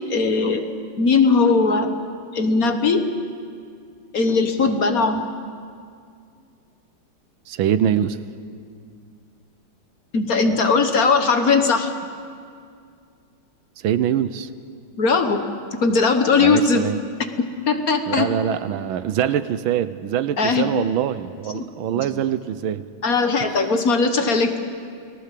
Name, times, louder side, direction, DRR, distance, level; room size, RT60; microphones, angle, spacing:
voice 1, 0.1-0.6 1.0-1.9 2.3-3.0 4.1-5.3 10.1-11.9 15.0-15.4 15.8-16.9 17.4-18.3 20.4-20.7 21.5-21.7 21.9-22.0 23.0-24.6, left 4 dB, 50° left, 7 dB, 1.6 m, -19 dB
voice 2, 7.5-8.2 13.8-14.5 16.4-17.0 18.1-22.8 23.5-23.6, right 10 dB, 80° right, 14 dB, 1.6 m, -23 dB
29.5 x 18.5 x 7.5 m, 2.3 s
omnidirectional pair, 2.2 m